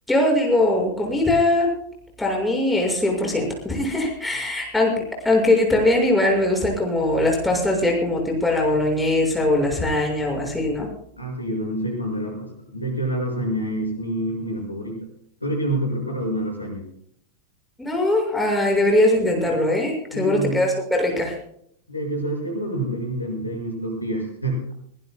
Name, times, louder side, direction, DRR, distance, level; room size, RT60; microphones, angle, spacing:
voice 1, 0.1-1.7 2.2-4.9 5.2-10.9 17.8-21.4, left 1 dB, 5° left, 0 dB, 6.0 m, -21 dB
voice 2, 11.2-15.0 15.4-16.8 20.1-20.6 21.9-24.6, right 1 dB, 85° left, 1 dB, 6.1 m, -27 dB
22.5 x 20.5 x 2.3 m, 0.66 s
figure-of-eight pair, 90°, 0 cm